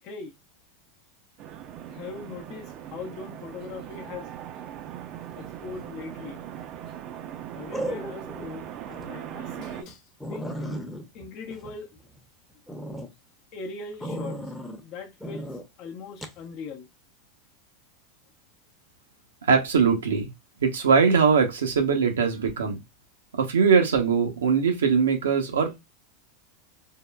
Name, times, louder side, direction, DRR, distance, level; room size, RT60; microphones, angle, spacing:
sound 1, 1.4-9.8, right 10 dB, 45° right, 0.4 m, -40 dB
voice 1, 1.9-4.3 5.4-6.4 7.5-10.8 11.1-12.0 13.5-14.4 14.8-16.9, left 4 dB, 50° left, 0.6 m, -40 dB
sound 2, 7.7-8.5 8.9-9.0 9.5-9.6 9.9-10.0 10.2-12.2 12.7-13.1 14.0-14.8 15.2-15.6 16.2-16.4, equal, 5° left, 0.7 m, -35 dB
voice 2, 19.4-20.3 20.6-22.8 23.3-25.8, right 5 dB, 90° right, 0.7 m, -21 dB
3.6 x 2.2 x 2.2 m
hypercardioid pair, 110°, 0 cm